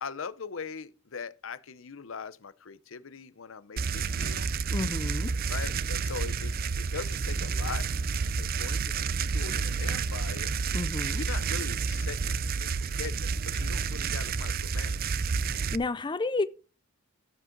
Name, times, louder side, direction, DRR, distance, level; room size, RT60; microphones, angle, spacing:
voice 1, 0.0-4.5 5.5-7.9 8.4-10.5 11.2-15.1, left 5 dB, 70° left, 0.7 m, -41 dB
sound 1, 3.8-15.8, right 5 dB, 45° right, 0.5 m, -30 dB
voice 2, 4.7-5.3 10.7-11.2 15.4-16.4, left 3 dB, 25° left, 0.4 m, -31 dB
13.5 x 7.7 x 3.8 m
head